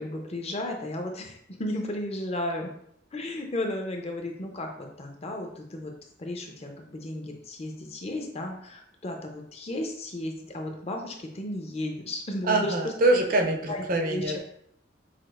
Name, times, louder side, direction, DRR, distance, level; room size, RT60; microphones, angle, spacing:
voice 1, 0.0-2.7 3.1-5.9 6.2-12.9 13.7-14.3, left 1 dB, 35° left, 2 dB, 0.6 m, -34 dB
voice 2, 12.5-14.4, right 2 dB, 50° right, 3 dB, 0.6 m, -24 dB
5.9 x 2.5 x 2.4 m, 0.70 s
head